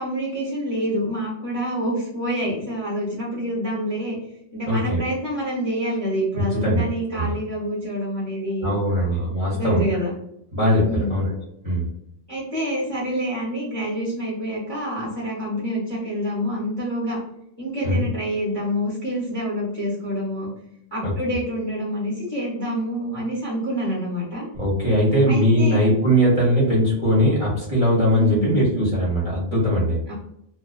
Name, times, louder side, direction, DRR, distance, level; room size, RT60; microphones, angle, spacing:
voice 1, 0.0-4.2 4.5-10.1 10.9-11.3 12.3-17.2 17.6-20.5 20.9-24.5 25.3-25.8 28.1-28.6 30.1-30.2, equal, 25° left, -5 dB, 0.7 m, -27 dB
voice 2, 4.7-5.0 6.3-6.8 7.1-7.3 8.6-9.8 10.5-11.4 11.6-11.9 17.8-18.0 21.0-21.1 24.5-30.1, equal, 35° right, -6 dB, 0.8 m, -20 dB
2.5 x 2.2 x 2.3 m, 0.76 s
omnidirectional pair, 1.1 m